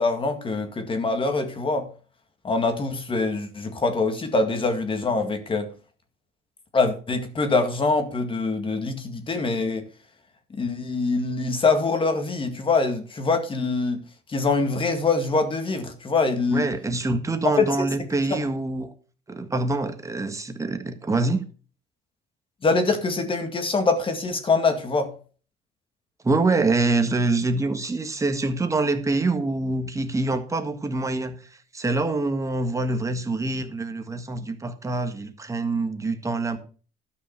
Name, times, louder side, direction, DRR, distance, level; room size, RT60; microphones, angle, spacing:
voice 1, 0.0-1.9 2.4-5.7 6.7-9.8 10.5-14.0 14.3-16.7 17.6-17.9 22.6-25.1, left 3 dB, 30° left, 2.0 m, -24 dB
voice 2, 16.5-18.9 19.3-21.4 26.2-31.4 31.7-36.6, right 3 dB, 20° right, 1.5 m, -25 dB
12.5 x 5.5 x 5.9 m
cardioid pair, 110°, 17 cm